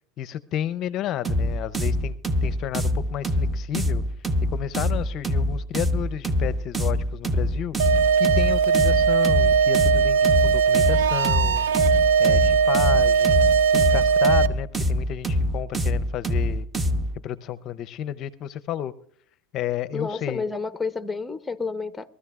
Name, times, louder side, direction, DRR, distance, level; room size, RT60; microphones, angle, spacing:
voice 1, 0.2-2.1 2.4-4.0 4.5-7.8 8.2-11.7 12.2-13.4 13.7-16.7 17.1-18.9 19.5-20.4, left 11 dB, 45° left, 0.6 m, -31 dB
sound 1, 1.2-17.1, equal, 15° right, 1.1 m, -25 dB
sound 2, 7.8-14.5, right 6 dB, 85° right, 0.6 m, -19 dB
voice 2, 19.9-22.2, left 4 dB, 10° left, 0.8 m, -30 dB
23.0 x 14.0 x 2.4 m
supercardioid pair, 110°, 0 cm